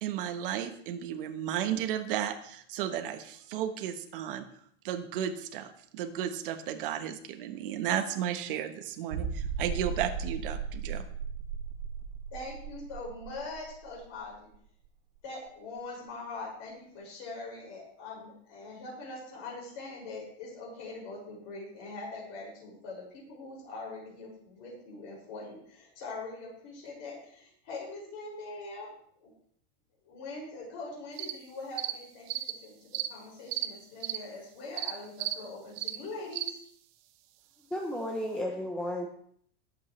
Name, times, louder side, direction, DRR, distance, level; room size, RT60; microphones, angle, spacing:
voice 1, 0.0-4.5 4.8-11.0, right 10 dB, 55° right, 7 dB, 1.3 m, -34 dB
sound 1, 9.1-14.5 14.8-14.9 15.5-15.6, right 6 dB, 75° right, 2.0 m, -36 dB
voice 2, 12.3-14.5 15.2-29.3 30.0-36.6, left 3 dB, 45° left, -2 dB, 6.1 m, -43 dB
sound 2, 31.2-31.3 31.8-31.9 32.3-32.5 32.9-33.1 33.5-33.7 34.0-34.2 34.8-34.9 35.2-35.3 35.8-36.0 36.3-36.5, right 15 dB, 35° right, 0.8 m, -33 dB
voice 3, 37.7-39.1, left 1 dB, 5° left, 1 dB, 0.7 m, -33 dB
20.0 x 8.4 x 3.2 m, 0.63 s
supercardioid pair, 165°, 31 cm